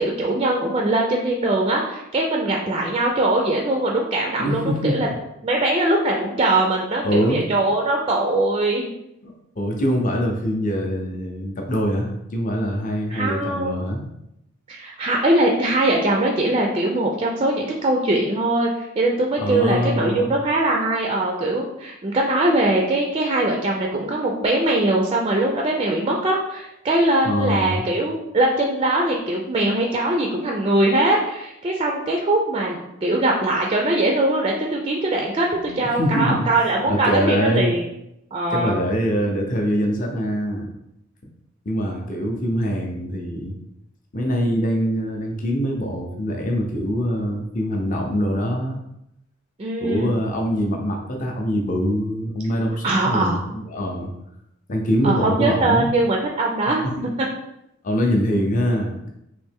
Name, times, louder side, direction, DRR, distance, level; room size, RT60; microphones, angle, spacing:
voice 1, 0.0-5.1 5.4-8.9 13.1-13.9 14.7-37.8 38.3-38.8 49.6-50.1 52.8-53.4 55.0-56.8 57.2-57.3, right 2 dB, 25° right, 0 dB, 0.3 m, -21 dB
voice 2, 4.4-4.9 7.0-7.4 9.2-14.1 19.4-20.3 27.2-27.9 35.5-36.5 36.9-37.7 38.5-40.7 41.7-43.6 44.1-48.8 49.8-54.1 54.7-55.9 56.8-57.1 57.8-59.1, equal, 40° left, 2 dB, 0.6 m, -24 dB
3.2 x 2.8 x 3.4 m, 0.83 s
head